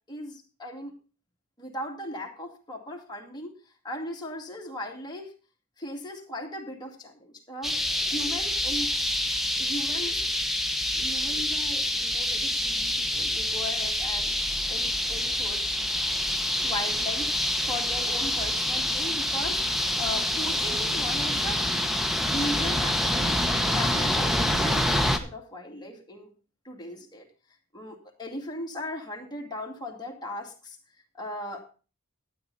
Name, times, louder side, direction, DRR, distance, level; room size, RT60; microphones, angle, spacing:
voice 1, 0.1-1.0 1.6-3.6 3.8-5.3 5.8-7.8 8.1-8.9 9.2-10.3 11.0-15.8 16.6-17.3 17.7-19.6 20.0-21.6 22.2-23.4 23.7-26.3 26.6-27.3 27.7-30.8 31.1-31.6, left 1 dB, 20° left, 0 dB, 2.5 m, -38 dB
sound 1, 7.6-25.2, left 1 dB, ahead, 1.0 m, -27 dB
13.0 x 9.2 x 4.1 m, 0.35 s
head